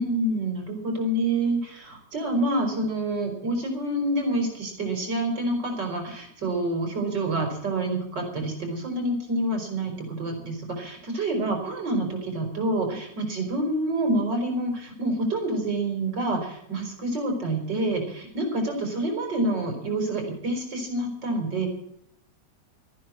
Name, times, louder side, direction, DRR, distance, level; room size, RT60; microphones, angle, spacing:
voice 1, 0.0-21.7, right 1 dB, 75° right, 2 dB, 5.6 m, -27 dB
14.0 x 10.5 x 7.5 m, 0.73 s
omnidirectional pair, 1.9 m